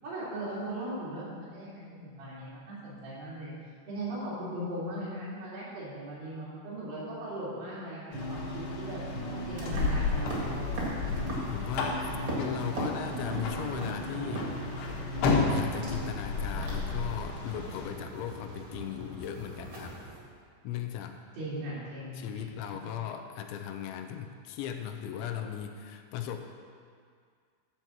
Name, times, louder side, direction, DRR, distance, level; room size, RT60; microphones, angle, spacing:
voice 1, 0.0-3.5 3.9-9.0 9.5-10.7 21.3-22.5, right 1 dB, 80° right, -9 dB, 5.6 m, -38 dB
sound 1, 8.1-17.9, left 4 dB, 70° left, 3.1 m, -33 dB
sound 2, 8.1-16.1, right 1 dB, 65° right, 1.4 m, -39 dB
sound 3, 9.5-20.2, right 1 dB, 40° right, 1.8 m, -40 dB
voice 2, 11.1-12.1 12.4-14.5 15.5-20.0 20.6-21.2 22.2-26.4, left 9 dB, 85° left, 5 dB, 3.0 m, -37 dB
12.0 x 4.6 x 7.3 m, 2.1 s
omnidirectional pair, 5.3 m